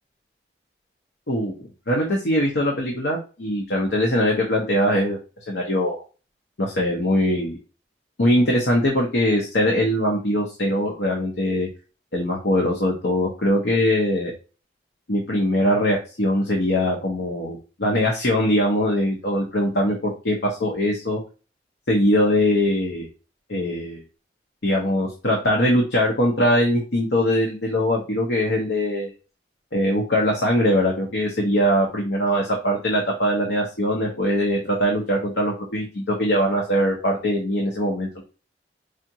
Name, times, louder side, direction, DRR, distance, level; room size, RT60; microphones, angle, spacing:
voice 1, 1.3-5.2 5.5-6.0 6.6-7.6 8.2-11.7 12.1-14.3 15.1-21.2 21.9-23.1 23.5-24.0 24.6-29.1 29.7-38.2, left 1 dB, 80° left, -1 dB, 0.9 m, -22 dB
5.0 x 2.5 x 2.8 m, 0.33 s
head